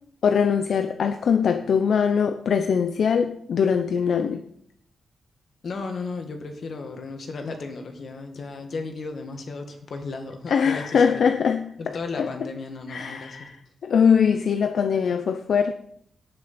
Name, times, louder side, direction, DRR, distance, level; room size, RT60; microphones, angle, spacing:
voice 1, 0.2-4.4 10.5-12.5 12.9-15.7, left 6 dB, 70° left, 0.7 m, -22 dB
voice 2, 5.6-11.3 11.8-13.5, left 3 dB, 55° left, 1.9 m, -34 dB
18.0 x 6.7 x 4.3 m
wide cardioid pair, 160°, 0 cm